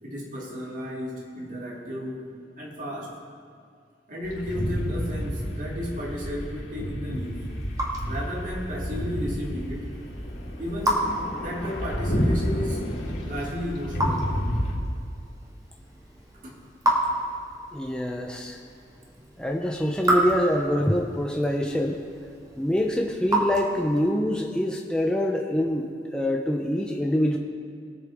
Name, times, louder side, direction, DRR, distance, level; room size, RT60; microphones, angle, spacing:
voice 1, 0.0-3.2 4.1-7.5 8.1-9.9 10.6-12.8 13.2-14.3 16.4-16.6, equal, 50° right, -3 dB, 2.6 m, -34 dB
sound 1, 4.2-14.8, equal, 85° left, 3.3 m, -30 dB
Raindrop / Drip, 7.0-24.2, right 1 dB, 20° right, 2.1 m, -32 dB
voice 2, 17.7-18.6 19.4-22.0 22.6-27.4, left 1 dB, 5° left, 0 dB, 0.7 m, -25 dB
22.5 x 8.0 x 3.6 m, 2.2 s
head